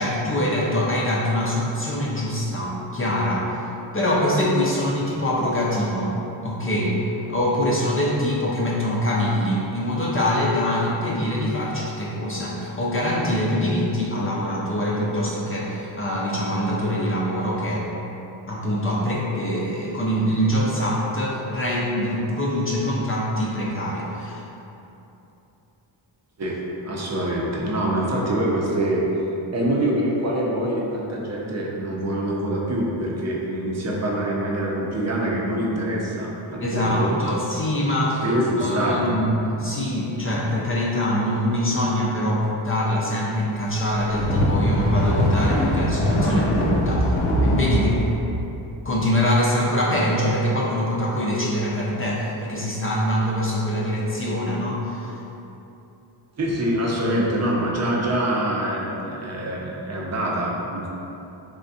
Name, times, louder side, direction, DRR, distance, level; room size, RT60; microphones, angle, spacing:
voice 1, 0.0-3.7 3.9-7.0 7.3-17.9 18.5-24.4 36.6-38.3 38.6-48.0 48.8-55.2, equal, 30° left, -5 dB, 0.4 m, -24 dB
voice 2, 26.4-29.0 29.5-37.2 38.2-39.2 39.7-39.8 56.4-60.9, right 1 dB, 30° right, -3 dB, 0.7 m, -25 dB
sound 1, 43.8-48.1, equal, 80° left, 0.7 m, -21 dB
3.6 x 3.2 x 2.7 m, 3.0 s
cardioid pair, 90°, 50 cm